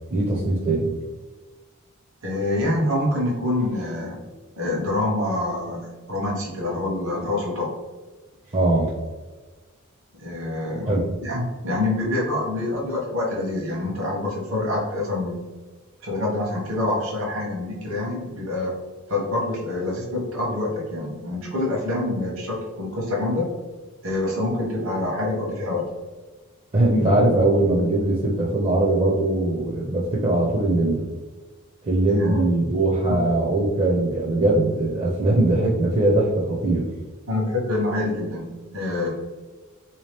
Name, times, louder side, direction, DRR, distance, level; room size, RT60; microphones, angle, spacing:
voice 1, 0.1-1.0 8.5-8.9 10.9-11.1 26.7-31.1 31.8-36.9, right 2 dB, 25° right, -4 dB, 0.5 m, -21 dB
voice 2, 2.2-4.2 4.5-7.7 10.2-15.4 16.0-18.7 19.1-23.5 24.0-25.8 32.1-32.5 37.3-39.1, left 2 dB, 60° right, -3 dB, 1.0 m, -26 dB
3.5 x 2.8 x 3.3 m, 1.3 s
head